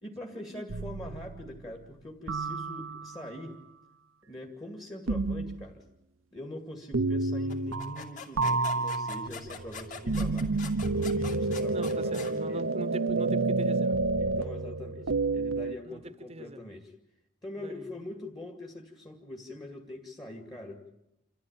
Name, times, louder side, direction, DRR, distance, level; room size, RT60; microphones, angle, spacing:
voice 1, 0.0-3.6 4.2-5.8 6.3-10.5 10.8-12.7 14.2-16.9 17.4-20.8, left 1 dB, 20° left, 2 dB, 2.2 m, -43 dB
sound 1, 0.7-1.5 2.3-3.4 5.1-5.6 6.9-8.1 8.4-15.8, right 3 dB, 80° right, 0.8 m, -30 dB
sound 2, 7.5-12.3, left 5 dB, 40° left, 2.9 m, -43 dB
voice 2, 11.7-14.0 15.8-16.6 17.6-17.9, right 1 dB, 30° right, 13 dB, 1.0 m, -41 dB
28.0 x 14.0 x 9.0 m, 0.82 s
head